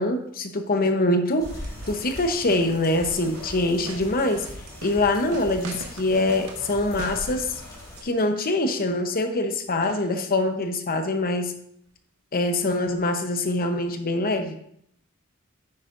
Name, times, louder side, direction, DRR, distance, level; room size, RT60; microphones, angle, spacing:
voice 1, 0.0-1.6 1.9-4.5 4.8-7.5 8.0-11.5 12.3-14.6, left 2 dB, 45° left, 6 dB, 0.9 m, -24 dB
sound 1, 1.4-8.0, left 1 dB, 20° left, 3.3 m, -41 dB
sound 2, 1.4-8.1 9.8-10.1 10.6-10.7 11.9-12.0 13.4-13.5, right 2 dB, 80° right, 1.4 m, -41 dB
9.8 x 8.3 x 2.6 m, 0.69 s
head